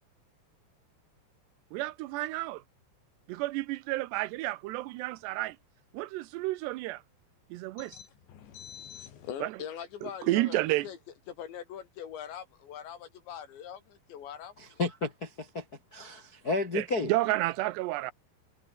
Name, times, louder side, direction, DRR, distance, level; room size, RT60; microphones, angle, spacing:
voice 1, 1.7-2.6 3.3-5.6 5.9-7.0 7.5-8.0 9.4-9.6 10.0-10.9 16.7-18.1, right 18 dB, 85° right, 2.8 m, -31 dB
voice 2, 7.8-11.0 11.3-14.5, left 9 dB, 85° left, 5.4 m, -43 dB
voice 3, 14.6-15.6 15.9-17.1, left 3 dB, 40° left, 1.3 m, -32 dB
omnidirectional pair, 5.0 m